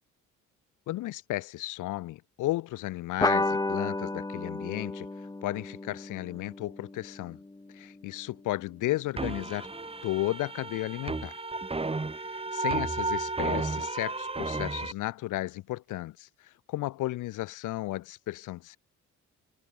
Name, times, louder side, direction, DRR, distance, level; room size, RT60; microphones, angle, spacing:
voice 1, 0.9-5.1 5.4-7.4 7.7-9.7 10.0-11.4 12.2-18.8, left 16 dB, 85° left, 1.1 m, -34 dB
sound 1, 3.2-8.1, left 2 dB, 15° left, 1.6 m, -32 dB
sound 2, 9.2-14.9, right 3 dB, 20° right, 2.5 m, -33 dB
cardioid pair, 90°, 30 cm